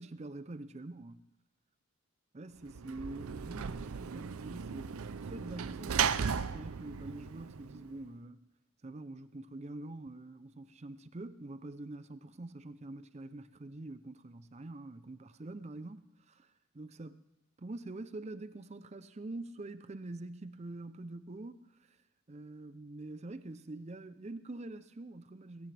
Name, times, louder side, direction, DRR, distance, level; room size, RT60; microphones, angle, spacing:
voice 1, 0.0-1.2 2.3-8.5 8.8-17.2 17.6-22.0 22.3-25.7, right 2 dB, 30° right, 0.5 m, -45 dB
Sliding door / Slam, 2.7-8.1, right 7 dB, 80° right, 0.5 m, -36 dB
20.5 x 17.0 x 3.4 m
head